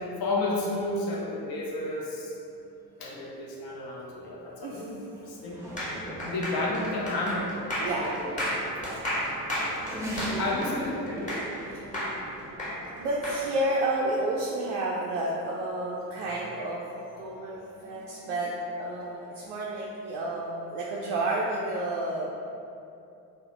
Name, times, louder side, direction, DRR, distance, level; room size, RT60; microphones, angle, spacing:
voice 1, 0.2-2.4 3.0-5.6 6.2-8.9 9.3-9.7 10.4-11.3, left 2 dB, 45° left, -3 dB, 0.7 m, -32 dB
Race car auto racing / Accelerating revving vroom, 3.6-19.8, right 1 dB, 5° right, 0.5 m, -43 dB
voice 2, 4.6-5.1 7.8-8.1 13.0-16.8 17.2-18.5 18.8-22.3, right 2 dB, 55° right, -5 dB, 0.5 m, -30 dB
sound 1, 5.8-11.6 11.9-13.4, equal, 15° left, 0.9 m, -32 dB
2.7 x 2.0 x 3.2 m, 2.6 s
figure-of-eight pair, 50°, 50 cm